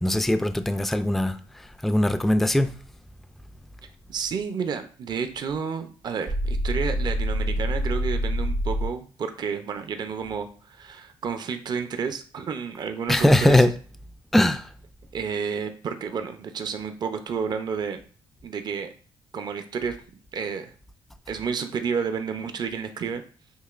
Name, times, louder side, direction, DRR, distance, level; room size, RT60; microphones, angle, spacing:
voice 1, 0.0-1.4 1.8-2.7 13.1-13.7 14.3-14.7, left 1 dB, ahead, 0.3 m, -20 dB
voice 2, 4.1-13.6 15.1-18.0 18.4-18.9 19.3-20.0 20.3-20.7 21.3-23.2, right 6 dB, 50° right, 0.5 m, -30 dB
sound 1, 6.3-8.9, equal, 70° right, 1.5 m, -26 dB
6.3 x 2.9 x 2.4 m
cardioid pair, 85°, 9 cm